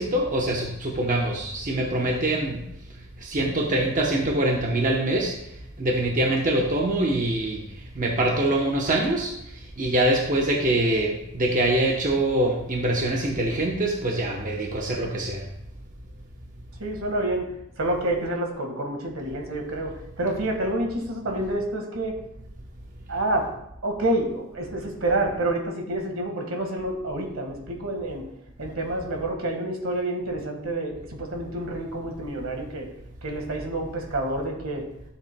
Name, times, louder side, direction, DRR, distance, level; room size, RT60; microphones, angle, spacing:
voice 1, 0.0-2.7 3.2-15.4, right 1 dB, 40° right, -1 dB, 0.9 m, -24 dB
voice 2, 16.8-17.5 17.8-22.2 23.1-23.5 23.8-28.2 28.6-32.9 33.2-34.8, right 1 dB, 70° right, 3 dB, 1.6 m, -28 dB
12.5 x 7.5 x 2.2 m, 0.81 s
head